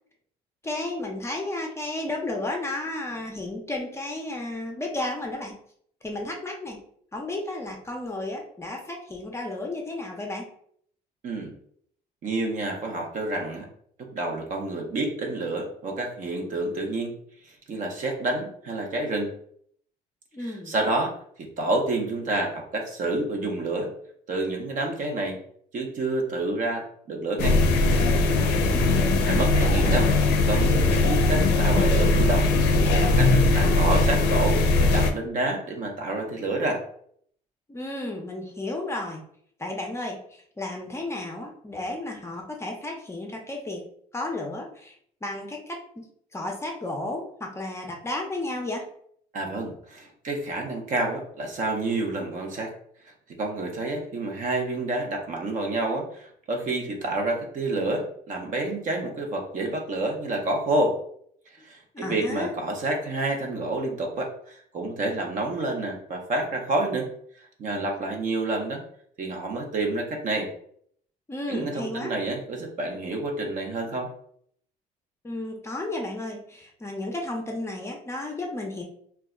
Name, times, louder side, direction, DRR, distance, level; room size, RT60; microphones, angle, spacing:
voice 1, 0.6-5.5 6.0-6.8 7.1-10.5 20.3-20.7 28.6-29.1 37.7-39.2 39.6-40.2 40.6-43.9 44.1-44.9 45.2-46.1 46.3-48.8 61.9-62.5 71.3-72.1 75.2-78.8, left 2 dB, 15° left, 1 dB, 0.5 m, -33 dB
voice 2, 12.2-13.6 14.1-17.2 17.4-19.3 20.4-21.1 21.6-23.9 24.3-25.4 25.7-27.6 29.2-32.5 33.0-36.8 49.3-52.7 53.4-61.0 61.6-67.1 67.4-68.8 69.2-70.5 71.5-74.1, right 2 dB, 50° right, 2 dB, 0.6 m, -29 dB
sound 1, 27.4-35.1, left 2 dB, 85° left, 0.4 m, -20 dB
2.2 x 2.0 x 3.6 m, 0.64 s
cardioid pair, 110°, 17 cm